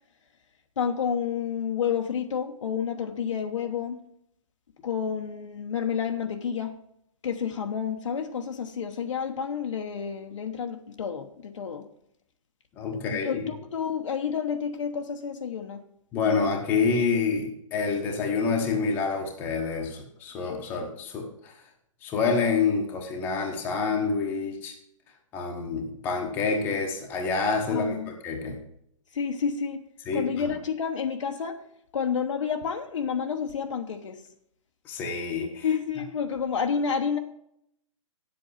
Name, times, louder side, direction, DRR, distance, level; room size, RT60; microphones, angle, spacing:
voice 1, 0.8-4.0 4.8-6.7 7.2-11.9 13.1-15.8 27.7-28.1 29.1-29.8 30.1-31.6 31.9-34.2 35.6-37.2, left 7 dB, 60° left, 4 dB, 1.1 m, -30 dB
voice 2, 12.8-13.5 16.1-21.6 22.0-24.7 25.3-28.6 30.1-30.3 34.8-35.6, left 4 dB, 10° left, 1 dB, 1.0 m, -27 dB
9.2 x 7.8 x 5.7 m, 0.74 s
hypercardioid pair, 175°, 17 cm